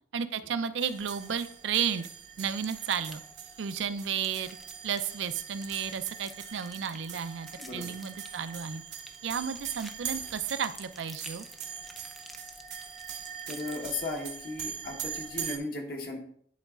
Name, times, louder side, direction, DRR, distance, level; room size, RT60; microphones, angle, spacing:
voice 1, 0.1-2.1 2.4-3.2 3.6-4.5 4.8-8.8 9.2-11.4, right 7 dB, 85° right, 11 dB, 0.4 m, -33 dB
sound 1, 0.8-15.6, right 8 dB, 65° right, 0.8 m, -42 dB
sound 2, 2.6-3.4 3.9-14.2, right 1 dB, ahead, 0.4 m, -50 dB
voice 2, 7.6-7.9 13.5-16.2, left 2 dB, 55° left, 1 dB, 1.0 m, -36 dB
10.5 x 3.9 x 2.4 m, 0.63 s
head